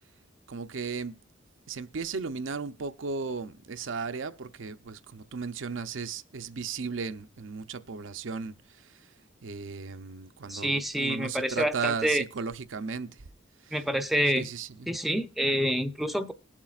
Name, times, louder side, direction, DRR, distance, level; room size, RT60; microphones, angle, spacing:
voice 1, 0.5-1.1 1.7-8.5 9.4-13.1 14.3-14.9, right 5 dB, 75° right, 0.6 m, -35 dB
voice 2, 10.5-12.2 13.7-14.5 14.9-16.3, equal, ahead, 0.5 m, -27 dB
20.0 x 7.3 x 2.4 m
head